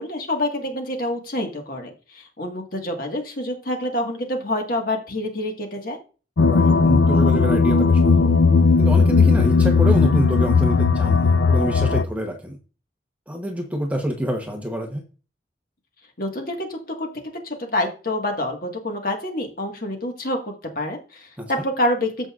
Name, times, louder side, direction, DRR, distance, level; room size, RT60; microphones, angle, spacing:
voice 1, 0.0-6.0 16.2-17.1 17.4-22.3, left 1 dB, 50° left, 3 dB, 1.6 m, -27 dB
sound 1, 6.4-12.0, left 4 dB, 75° left, 0.5 m, -16 dB
voice 2, 6.4-8.3 8.8-12.6 13.3-15.0 21.4-21.5, equal, 10° right, 3 dB, 0.9 m, -27 dB
14.0 x 5.3 x 2.4 m, 0.35 s
head